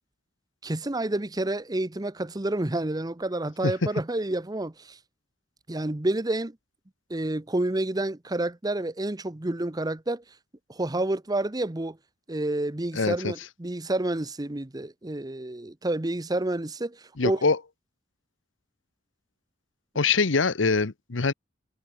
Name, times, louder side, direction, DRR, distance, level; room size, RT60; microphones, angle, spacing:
voice 1, 0.6-5.0 5.7-6.6 7.1-10.2 10.7-12.0 12.3-17.4, right 1 dB, 20° right, 0.9 m, -29 dB
voice 2, 12.9-13.3 17.2-17.6 19.9-21.3, left 4 dB, 85° left, 1.0 m, -24 dB
head